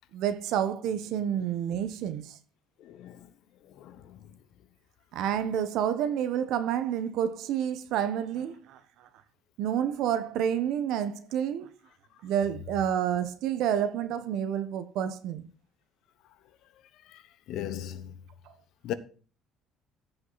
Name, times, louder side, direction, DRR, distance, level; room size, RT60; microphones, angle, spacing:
voice 1, 0.1-2.4 5.1-9.1 9.6-11.8 12.2-15.4 18.5-18.6, right 9 dB, 65° right, 1.1 m, -29 dB
voice 2, 2.8-3.2 3.7-4.3 17.1-17.2 17.5-18.1 18.8-18.9, left 11 dB, 65° left, 1.0 m, -38 dB
15.0 x 5.7 x 4.1 m
cardioid pair, 160°, 0 cm